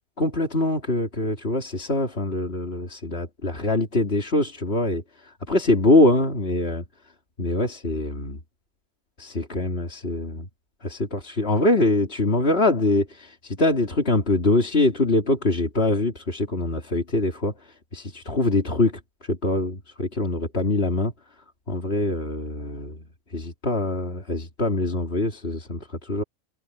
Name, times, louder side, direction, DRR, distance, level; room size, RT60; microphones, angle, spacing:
voice 1, 0.2-6.8 7.4-8.4 9.2-10.5 10.8-17.5 17.9-21.1 21.7-23.1 23.3-26.2, left 2 dB, 50° left, 3.1 m, -23 dB
omnidirectional pair, 1.4 m